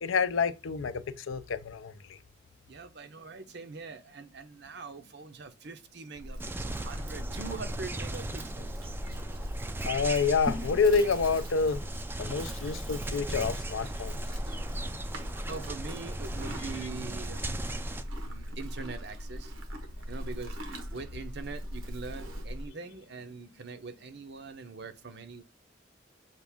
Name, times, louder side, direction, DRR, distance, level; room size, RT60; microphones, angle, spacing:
voice 1, 0.0-2.2 9.8-11.8 12.2-14.2, left 5 dB, 80° left, 0.5 m, -28 dB
voice 2, 2.7-8.8 15.5-17.4 18.2-19.5 20.1-20.6 20.9-25.4, right 4 dB, 55° right, 0.6 m, -43 dB
Livestock farm animals working animals, 6.2-22.7, equal, 85° right, 1.1 m, -39 dB
sound 1, 6.4-18.0, right 1 dB, 10° right, 0.3 m, -38 dB
5.9 x 2.5 x 3.5 m
head